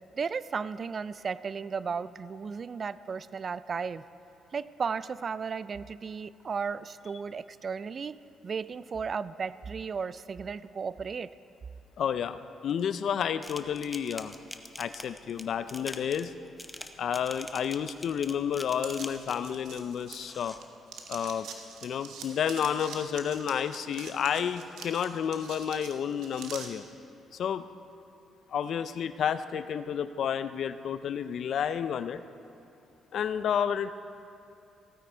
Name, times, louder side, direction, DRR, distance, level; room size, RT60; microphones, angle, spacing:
voice 1, 0.2-4.0 4.5-8.1 8.4-11.3, right 5 dB, 45° right, 16 dB, 0.3 m, -34 dB
voice 2, 12.0-14.3 14.8-16.3 17.0-20.5 21.1-21.5 21.8-26.8 27.3-27.6 28.5-32.2 33.1-33.9, left 8 dB, 65° left, 12 dB, 0.4 m, -30 dB
sound 1, 13.4-19.5 20.1-20.6, left 1 dB, 10° left, 0.8 m, -44 dB
sound 2, 18.8-20.6 20.9-26.7, right 6 dB, 85° right, 1.2 m, -44 dB
16.0 x 9.3 x 4.4 m, 2.6 s
cardioid pair, 90°, 0 cm